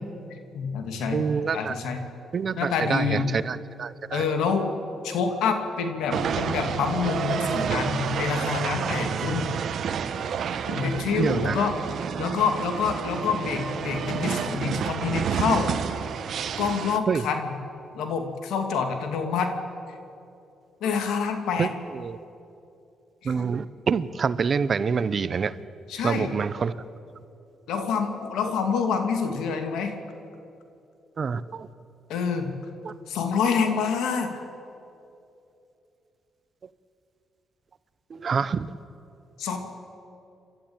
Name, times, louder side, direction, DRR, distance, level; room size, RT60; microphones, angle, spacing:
voice 1, 0.5-1.2 1.5-2.0 2.6-3.3 4.1-4.7 5.0-9.5 10.7-11.7 12.2-15.7 16.6-17.5 17.9-19.5 20.8-21.7 25.9-26.3 27.7-29.9 32.1-32.5 33.1-34.3 39.4-39.6, left 6 dB, 85° left, 5 dB, 2.5 m, -27 dB
voice 2, 1.1-1.7 2.3-4.2 9.0-9.1 11.2-11.7 17.1-17.3 21.6-22.2 23.2-25.5 26.0-26.8 31.2-31.7 32.8-32.9 38.1-38.7, right 5 dB, 45° right, 16 dB, 0.8 m, -26 dB
sound 1, 6.1-17.0, right 7 dB, 65° right, 1.1 m, -29 dB
28.5 x 12.5 x 8.9 m, 2.7 s
cardioid pair, 90°, 0 cm